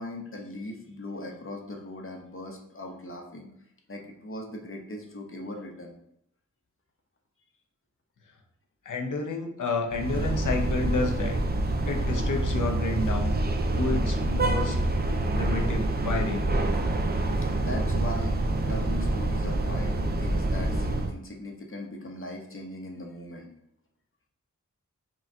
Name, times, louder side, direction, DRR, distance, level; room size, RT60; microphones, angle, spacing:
voice 1, 0.0-3.5 3.9-5.9 17.6-18.4 18.7-23.5, left 1 dB, 45° left, 1 dB, 0.9 m, -39 dB
voice 2, 8.9-11.4 11.9-13.4 13.8-14.8 15.3-16.4, left 3 dB, 75° left, 2 dB, 0.7 m, -30 dB
sound 1, 9.9-21.1, right 2 dB, 30° right, 0.5 m, -26 dB
5.3 x 2.3 x 2.7 m, 0.75 s
cardioid pair, 55°, 31 cm